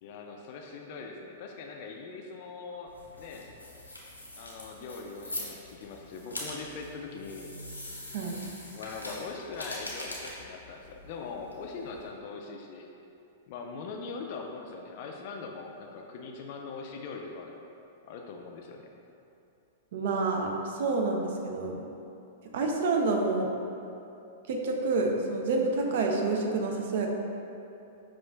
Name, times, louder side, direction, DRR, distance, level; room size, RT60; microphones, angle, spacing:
voice 1, 0.0-2.9 3.2-3.5 4.4-7.5 8.7-12.9 13.5-17.6 18.0-18.9, left 4 dB, 45° left, 2 dB, 0.3 m, -41 dB
sound 1, 2.9-12.1, left 1 dB, 90° left, 0.6 m, -43 dB
voice 2, 19.9-21.8 22.5-23.5 24.5-27.1, right 3 dB, 55° right, 1 dB, 0.4 m, -28 dB
5.6 x 2.4 x 2.2 m, 2.8 s
figure-of-eight pair, 100°, 0 cm